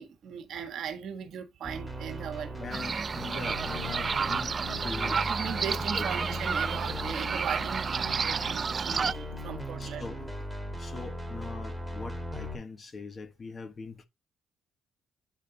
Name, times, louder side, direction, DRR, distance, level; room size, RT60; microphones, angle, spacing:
voice 1, 0.0-2.7 5.3-10.0, right 8 dB, 70° right, 1.5 m, -38 dB
sound 1, 1.6-12.6, equal, ahead, 1.8 m, -38 dB
voice 2, 2.6-5.3 5.9-6.1 9.8-10.2 10.8-14.1, left 4 dB, 40° left, 1.3 m, -41 dB
sound 2, 2.7-9.1, right 5 dB, 40° right, 0.3 m, -31 dB
sound 3, 3.5-10.3, left 5 dB, 85° left, 2.9 m, -49 dB
9.1 x 3.6 x 3.8 m
cardioid pair, 80°, 0 cm